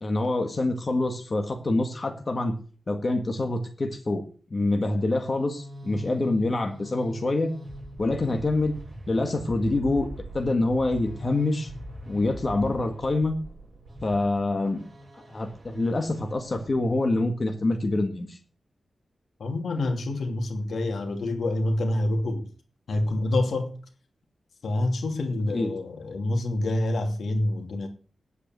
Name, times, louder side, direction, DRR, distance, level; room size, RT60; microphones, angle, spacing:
voice 1, 0.0-2.6 2.9-4.2 4.5-7.5 8.0-8.7 9.1-10.1 10.3-11.7 12.1-13.3 14.0-14.8 15.1-18.4 25.5-25.7, left 2 dB, 30° left, 1.8 m, -26 dB
sound 1, 5.1-17.0, equal, 30° right, 5.5 m, -42 dB
voice 2, 19.4-22.5 22.9-23.7 24.6-27.9, left 1 dB, 70° left, 2.7 m, -27 dB
10.0 x 8.5 x 7.8 m
wide cardioid pair, 140°, 0 cm